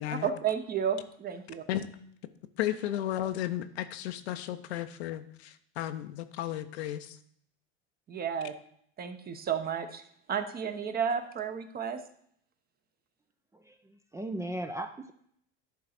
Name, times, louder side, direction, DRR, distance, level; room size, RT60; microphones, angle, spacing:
voice 1, 0.1-1.6 8.1-8.5 9.0-10.0 10.3-12.0, right 7 dB, 30° right, 9 dB, 1.0 m, -32 dB
voice 2, 2.6-7.2, left 12 dB, 80° left, 10 dB, 0.8 m, -34 dB
voice 3, 13.5-15.1, right 1 dB, 10° right, 7 dB, 0.5 m, -37 dB
11.0 x 3.9 x 5.9 m, 0.66 s
supercardioid pair, 105°, 32 cm